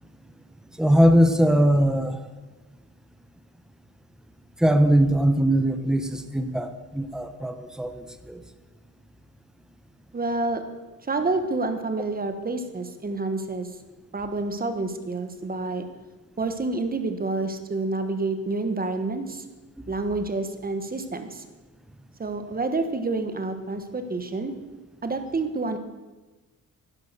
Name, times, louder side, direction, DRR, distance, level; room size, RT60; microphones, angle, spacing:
voice 1, 0.8-2.2 4.6-8.4, equal, ahead, 8 dB, 0.9 m, -21 dB
voice 2, 10.1-10.6 11.1-13.7 14.1-15.9 16.4-19.4 19.9-21.4 22.2-24.5 25.0-25.8, right 3 dB, 25° right, 8 dB, 1.3 m, -28 dB
11.0 x 10.5 x 6.8 m, 1.2 s
cardioid pair, 125°, 36 cm